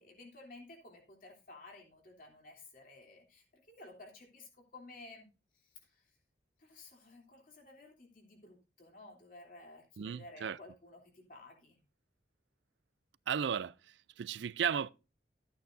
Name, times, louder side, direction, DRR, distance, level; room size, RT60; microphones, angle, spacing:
voice 1, 0.0-5.3 5.5-6.1 6.6-11.8, left 2 dB, 50° left, 3.1 m, -54 dB
voice 2, 10.0-10.6 13.3-14.9, right 7 dB, 75° right, 0.4 m, -35 dB
13.5 x 9.1 x 2.6 m
head